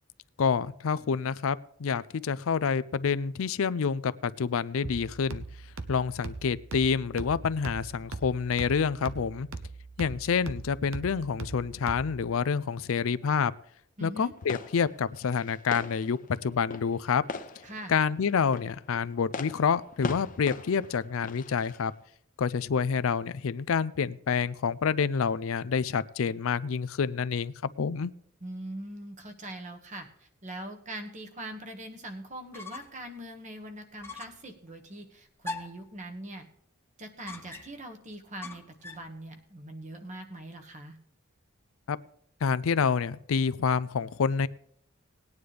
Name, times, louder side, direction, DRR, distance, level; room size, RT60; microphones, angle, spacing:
voice 1, 0.4-5.4 5.9-9.5 10.0-13.5 14.0-17.2 17.9-21.9 22.4-28.1 41.9-42.0 42.4-44.5, left 6 dB, 70° left, 15 dB, 0.4 m, -28 dB
sound 1, 4.8-12.3, right 3 dB, 65° right, 0.8 m, -41 dB
voice 2, 14.0-14.3 17.6-18.0 28.4-36.5 37.0-41.0, right 1 dB, 35° right, 5 dB, 1.4 m, -42 dB
sound 2, 14.4-22.0, left 3 dB, 40° left, 0.7 m, -41 dB
sound 3, 32.3-33.1 33.4-33.5 34.0-34.5 35.4-35.9 37.3-37.9 38.4-39.1, left 3 dB, 10° left, 1.0 m, -41 dB
19.0 x 9.6 x 3.4 m, 0.68 s
head